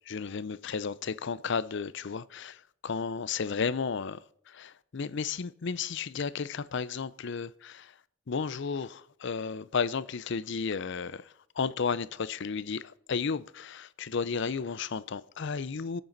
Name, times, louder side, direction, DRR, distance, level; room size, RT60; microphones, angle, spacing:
voice 1, 0.1-4.2 4.5-7.9 8.3-16.0, left 5 dB, 60° left, 0.5 m, -33 dB
24.5 x 9.2 x 4.0 m
head